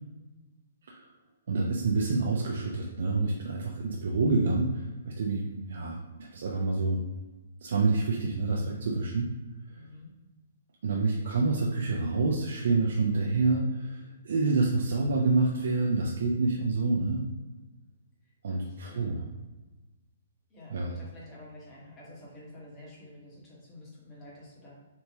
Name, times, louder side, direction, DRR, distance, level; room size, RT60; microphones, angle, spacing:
voice 1, 1.5-7.0 7.6-9.3 10.8-17.2 18.4-19.2 20.7-20.9, right 3 dB, 70° right, -2 dB, 0.5 m, -27 dB
voice 2, 9.7-10.1 18.2-19.2 20.5-24.7, left 2 dB, 20° left, -7 dB, 1.4 m, -49 dB
3.4 x 2.7 x 2.9 m, 1.2 s
hypercardioid pair, 150°, 0 cm